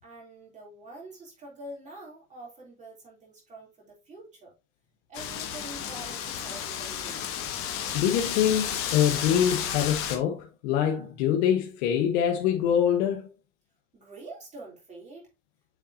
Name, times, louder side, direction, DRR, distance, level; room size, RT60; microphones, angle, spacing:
voice 1, 0.0-4.5 5.1-7.3 13.9-15.3, right 2 dB, 15° right, 3.6 m, -46 dB
Wind, 5.1-10.2, left 9 dB, 35° left, 1.5 m, -32 dB
voice 2, 7.9-13.3, left 9 dB, 55° left, 1.4 m, -25 dB
7.3 x 6.9 x 2.9 m
supercardioid pair, 155°, 41 cm